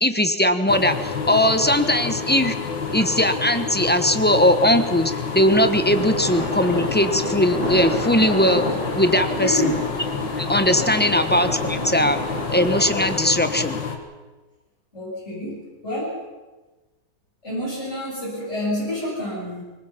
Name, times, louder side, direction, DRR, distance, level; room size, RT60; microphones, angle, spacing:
voice 1, 0.0-2.5 2.9-8.6 8.9-9.8 10.4-12.2 12.5-13.8, left 1 dB, 10° left, 9 dB, 0.7 m, -19 dB
sound 1, 0.7-14.0, left 5 dB, 75° left, 2.6 m, -29 dB
sound 2, 5.5-13.2, left 1 dB, 55° left, 6.5 m, -30 dB
voice 2, 9.3-9.7 11.0-11.2 14.9-16.2 17.4-19.6, left 1 dB, 35° left, -9 dB, 7.7 m, -28 dB
24.5 x 21.5 x 5.8 m, 1.2 s
omnidirectional pair, 2.0 m